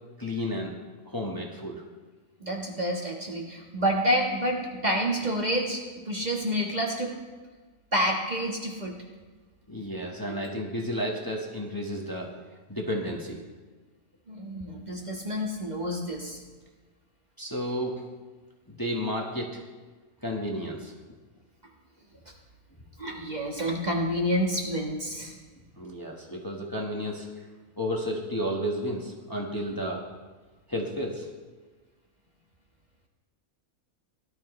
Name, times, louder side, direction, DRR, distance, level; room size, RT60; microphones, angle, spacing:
voice 1, 0.2-0.7 1.0-1.8 9.7-12.3 12.7-13.4 17.4-18.0 18.7-19.6 20.2-20.9 25.8-27.3 27.8-30.0 30.7-31.3, equal, 15° left, -1 dB, 1.4 m, -32 dB
voice 2, 2.4-7.1 7.9-8.9 10.3-10.4 14.3-16.4 23.0-25.3, equal, 30° right, -1 dB, 1.5 m, -28 dB
18.0 x 12.5 x 3.2 m, 1.3 s
omnidirectional pair, 1.4 m